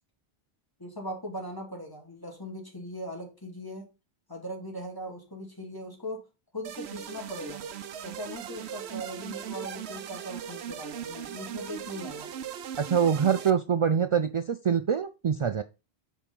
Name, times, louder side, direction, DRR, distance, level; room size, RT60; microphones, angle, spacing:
voice 1, 0.8-3.9 4.3-6.2 6.5-7.6 8.0-12.3, equal, 20° left, 0 dB, 2.7 m, -39 dB
sound 1, 6.6-13.5, right 9 dB, 80° right, 0.9 m, -39 dB
voice 2, 12.8-15.6, right 7 dB, 55° right, 11 dB, 0.3 m, -25 dB
7.3 x 4.9 x 5.5 m, 0.29 s
omnidirectional pair, 1.1 m